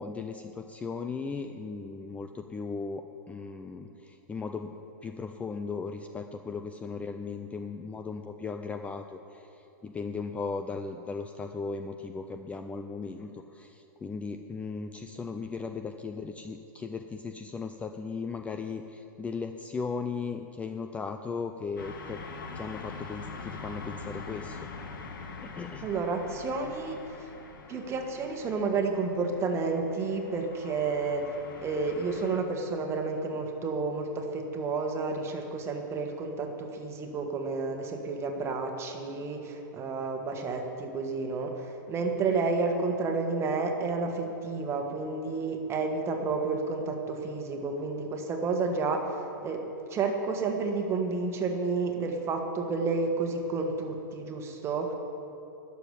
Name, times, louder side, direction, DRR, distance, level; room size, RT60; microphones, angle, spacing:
voice 1, 0.0-4.7 5.0-22.2 22.5-24.7 25.4-25.9, left 4 dB, 10° left, 6 dB, 0.5 m, -37 dB
sound 1, 21.8-32.4, left 4 dB, 80° left, 1.8 m, -44 dB
voice 2, 25.8-27.0 27.7-31.2 31.6-49.6 49.9-54.9, right 4 dB, 25° right, 3 dB, 1.6 m, -30 dB
11.5 x 7.0 x 9.8 m, 2.9 s
hypercardioid pair, 130°, 11 cm